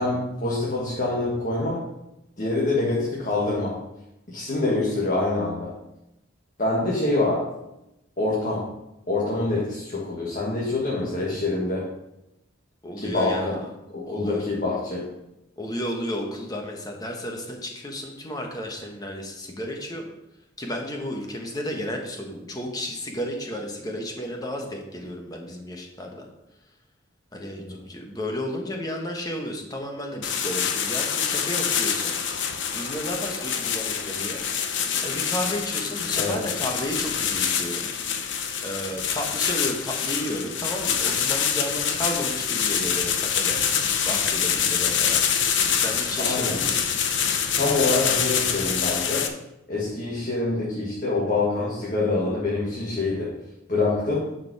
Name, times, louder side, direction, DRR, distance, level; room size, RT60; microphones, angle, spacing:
voice 1, 0.0-1.8 2.4-3.8 4.3-5.7 6.6-7.5 8.2-8.7 9.1-11.9 13.0-13.6 13.9-15.1 27.7-27.8 36.2-36.4 46.2-46.6 47.6-49.3 49.7-53.4 53.7-54.2, left 2 dB, 40° left, -5 dB, 1.7 m, -25 dB
voice 2, 12.8-13.7 14.1-14.5 15.6-20.1 20.6-26.3 27.3-32.1 32.7-34.4 35.0-37.9 38.6-45.2 45.7-46.8, equal, 20° left, 1 dB, 1.3 m, -33 dB
sound 1, 30.2-49.3, left 7 dB, 70° left, 0.8 m, -25 dB
10.5 x 5.0 x 4.8 m, 0.90 s
head